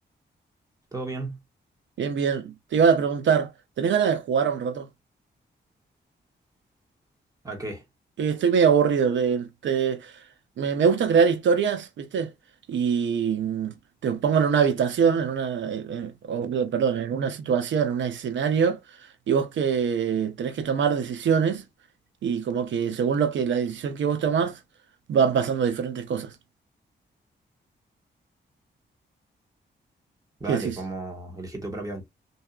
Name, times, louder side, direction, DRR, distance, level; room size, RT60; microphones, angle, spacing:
voice 1, 0.9-1.4 7.4-7.8 30.4-32.0, right 2 dB, 20° right, 1.2 m, -34 dB
voice 2, 2.0-3.5 3.8-4.9 8.2-10.1 10.6-12.3 12.7-13.7 14.0-18.8 19.3-21.6 22.2-24.5 25.1-26.3 30.5-30.8, right 6 dB, 75° right, 0.6 m, -23 dB
2.7 x 2.3 x 2.3 m
cardioid pair, 80°, 19 cm